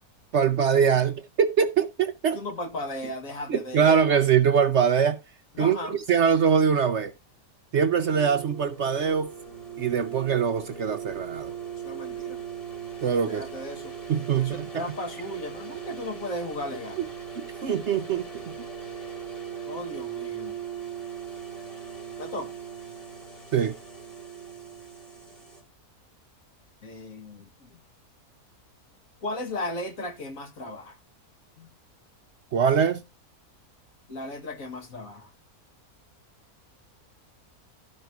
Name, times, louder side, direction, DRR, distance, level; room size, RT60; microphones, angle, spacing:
voice 1, 0.3-2.4 3.5-5.2 5.6-7.1 7.7-9.3 9.8-11.5 13.0-13.4 14.1-14.8 17.0-17.1 17.4-18.5 23.5-23.8 32.5-33.0, right 7 dB, 55° right, 0.9 m, -23 dB
voice 2, 2.3-3.9 5.5-6.0 11.8-12.5 13.3-13.9 14.4-17.1 19.7-20.6 22.2-22.5 26.8-27.8 29.2-31.0 31.6-31.7 34.1-35.3, left 1 dB, 60° left, 2.0 m, -36 dB
sound 1, 7.7-25.6, right 8 dB, 25° left, 2.0 m, -39 dB
12.0 x 5.5 x 4.5 m
omnidirectional pair, 1.6 m